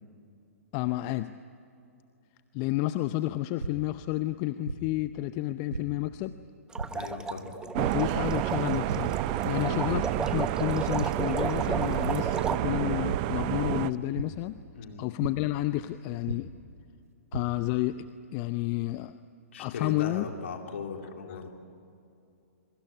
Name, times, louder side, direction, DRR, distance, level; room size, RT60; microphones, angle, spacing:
voice 1, 0.7-1.3 2.5-6.3 7.8-9.2 9.4-14.6 15.0-16.5 17.3-18.1 18.3-19.1 19.6-20.3 21.3-21.4, left 17 dB, 35° left, 12 dB, 0.7 m, -30 dB
sound 1, 3.6-3.7 4.6-4.8 5.7-5.8 6.8-6.9 7.8-7.9 8.9-9.0 9.4-9.6 9.9-10.0 11.0-11.1 12.0-12.2 13.1-13.2 14.1-14.2 15.2-15.3 16.3-16.4 17.1-17.4, right 4 dB, 80° right, 2.3 m, -33 dB
sound 2, 6.7-12.6, right 4 dB, 10° right, 1.0 m, -35 dB
voice 2, 6.9-7.5 9.5-9.8 14.8-15.0 19.5-21.5, left 5 dB, 60° left, 3 dB, 3.8 m, -38 dB
sound 3, 7.7-13.9, right 15 dB, 35° right, 0.8 m, -29 dB
25.5 x 23.5 x 10.0 m, 2.6 s
figure-of-eight pair, 115°, 8 cm